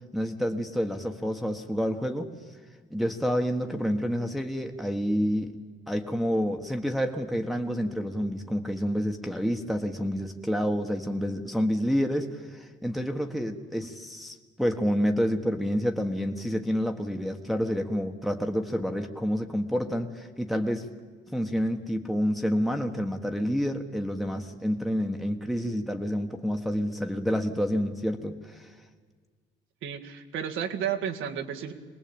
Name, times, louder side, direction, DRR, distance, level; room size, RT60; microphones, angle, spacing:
voice 1, 0.1-2.3 2.9-5.5 5.9-20.9 21.3-28.7, equal, ahead, 3 dB, 1.5 m, -28 dB
voice 2, 29.8-31.7, right 8 dB, 85° right, 4 dB, 2.0 m, -32 dB
23.5 x 19.5 x 8.9 m, 1.5 s
cardioid pair, 90°, 20 cm